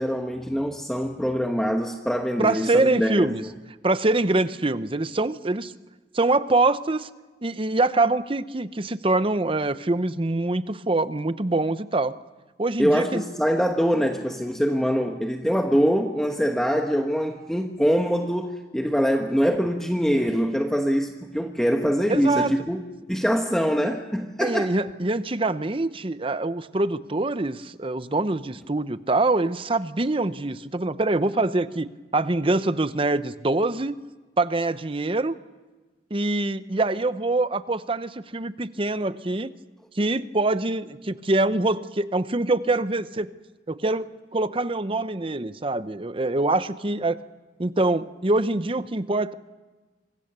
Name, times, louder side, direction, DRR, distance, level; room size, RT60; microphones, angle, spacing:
voice 1, 0.0-3.5 12.8-22.8 23.1-24.7, equal, 5° left, 3 dB, 1.2 m, -24 dB
voice 2, 2.4-3.4 3.8-5.7 6.1-7.1 7.4-12.2 12.6-13.2 22.1-22.5 24.4-33.9 34.4-35.3 36.1-39.5 39.9-43.3 43.7-47.2 47.6-49.3, right 2 dB, 30° right, 13 dB, 0.8 m, -24 dB
27.0 x 25.5 x 6.8 m, 1.3 s
head